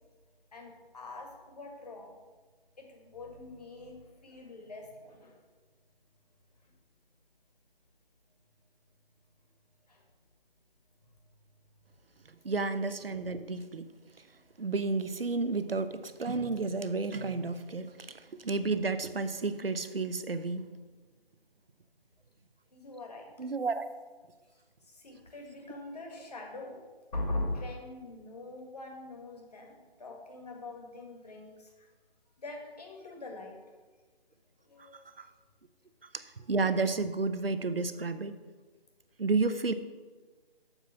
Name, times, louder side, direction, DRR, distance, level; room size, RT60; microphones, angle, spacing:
voice 1, 0.5-2.1 2.8-5.4 9.9-10.0 15.7-15.8 22.7-23.3 24.9-26.8 27.1-31.7 32.4-33.6 34.7-35.1, left 2 dB, 40° left, 1 dB, 1.8 m, -42 dB
voice 2, 12.4-13.8 14.6-17.9 18.4-20.6 23.4-23.9 36.5-38.3 39.2-39.7, right 3 dB, 70° right, 12 dB, 0.8 m, -31 dB
7.1 x 5.9 x 7.0 m, 1.3 s
figure-of-eight pair, 155°, 30 cm